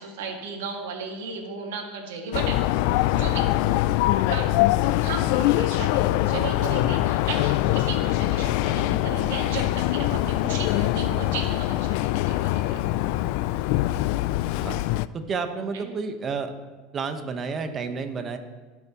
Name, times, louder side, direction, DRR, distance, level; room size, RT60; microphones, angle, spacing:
voice 1, 0.0-3.6 4.3-4.5 5.0-12.8 15.7-15.9, right 5 dB, 90° right, 1 dB, 2.2 m, -35 dB
sound 1, 2.3-15.1, left 15 dB, 70° left, 0.3 m, -23 dB
voice 2, 15.1-16.5 16.9-18.4, right 5 dB, 30° right, 7 dB, 1.2 m, -30 dB
17.5 x 7.3 x 3.1 m, 1.3 s
supercardioid pair, 115°, 0 cm